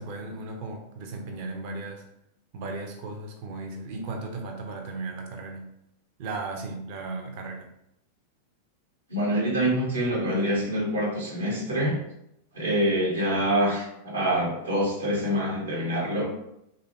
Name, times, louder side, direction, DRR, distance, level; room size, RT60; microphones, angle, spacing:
voice 1, 0.0-2.0 2.5-5.7 6.2-7.7, right 3 dB, 45° right, 2 dB, 0.7 m, -36 dB
voice 2, 9.1-12.0 12.5-16.3, equal, 75° right, -4 dB, 1.3 m, -26 dB
3.3 x 2.6 x 3.0 m, 0.79 s
figure-of-eight pair, 90°, 0 cm